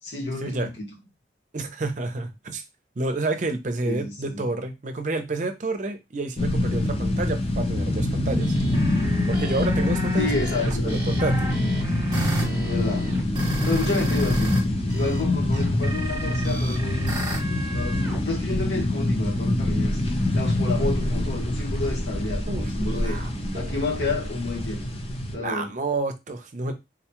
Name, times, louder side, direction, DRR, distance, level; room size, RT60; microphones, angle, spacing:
voice 1, 0.0-0.9 3.8-4.4 10.2-11.2 12.6-13.1 13.6-17.2 17.7-20.0 20.3-23.2 23.5-25.0 25.3-25.7, left 3 dB, 90° left, 1.3 m, -30 dB
voice 2, 1.5-2.6 3.0-8.6 9.3-11.5 22.5-23.8 25.3-26.7, right 2 dB, 45° right, 0.5 m, -30 dB
sound 1, 6.4-25.3, left 1 dB, 35° left, 0.6 m, -25 dB
sound 2, 8.4-14.6 14.9-18.2, right 1 dB, 25° right, 1.0 m, -32 dB
3.8 x 2.3 x 2.9 m
head